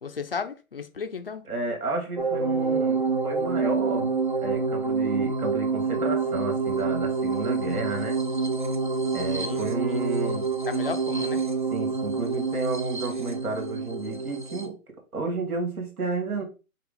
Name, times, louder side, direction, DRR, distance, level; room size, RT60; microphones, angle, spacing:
voice 1, 0.0-1.4 9.4-10.0 10.7-11.4, left 5 dB, 45° left, 0.4 m, -34 dB
voice 2, 1.5-4.1 4.4-8.2 9.1-10.4 11.7-14.8 15.1-16.4, right 3 dB, 80° right, 2.2 m, -31 dB
sound 1, 2.2-14.7, right 4 dB, 35° right, 0.4 m, -27 dB
5.8 x 2.4 x 3.8 m
hypercardioid pair, 160°, 43 cm